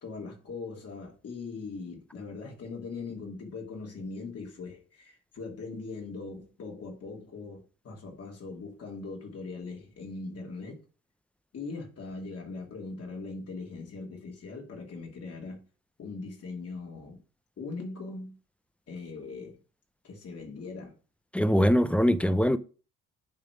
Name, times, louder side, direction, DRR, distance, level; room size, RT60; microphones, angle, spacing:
voice 1, 0.0-10.8 11.5-15.6 16.0-17.2 17.6-18.4 18.9-19.6 20.0-21.0, left 3 dB, 50° left, 2.7 m, -40 dB
voice 2, 21.3-22.6, equal, 5° left, 0.5 m, -22 dB
9.4 x 3.3 x 5.0 m
cardioid pair, 90°, 30 cm